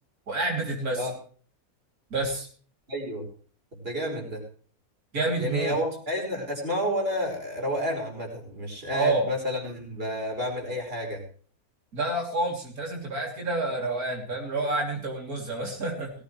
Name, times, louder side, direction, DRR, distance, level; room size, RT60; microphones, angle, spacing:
voice 1, 0.3-1.1 2.1-2.5 5.1-5.8 8.9-9.3 11.9-16.1, right 2 dB, 90° right, 1 dB, 3.7 m, -28 dB
voice 2, 2.9-3.3 3.7-4.4 5.4-11.2, equal, 40° right, 1 dB, 5.2 m, -30 dB
18.0 x 15.5 x 3.3 m, 0.43 s
omnidirectional pair, 1.5 m